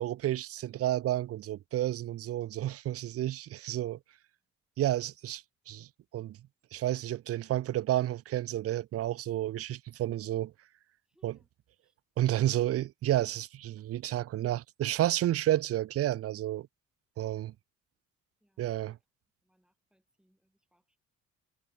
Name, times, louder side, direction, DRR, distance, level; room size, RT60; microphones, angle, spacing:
voice 1, 0.0-4.0 4.8-5.9 6.1-6.4 6.7-10.5 11.2-11.3 12.2-16.7 17.2-17.5 18.6-18.9, right 13 dB, 50° right, 0.5 m, -31 dB
voice 2, 11.0-11.5 11.8-12.0 18.4-19.1 19.4-21.0, equal, 5° right, 7.4 m, -73 dB
cardioid pair, 90°, 30 cm